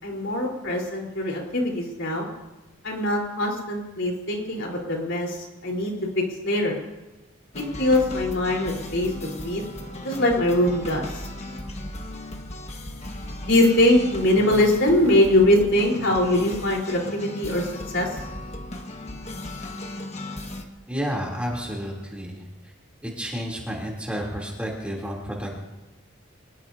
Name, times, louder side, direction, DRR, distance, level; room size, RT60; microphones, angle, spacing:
voice 1, 0.0-2.3 2.8-6.8 7.5-9.6 10.0-11.3 13.5-17.7 17.9-18.2, left 1 dB, 60° left, -1 dB, 4.1 m, -22 dB
sound 1, 7.5-20.6, left 1 dB, 30° left, 1.5 m, -36 dB
voice 2, 20.9-22.4 23.0-25.6, equal, 5° right, -3 dB, 3.2 m, -31 dB
24.5 x 21.0 x 2.8 m, 1.1 s
head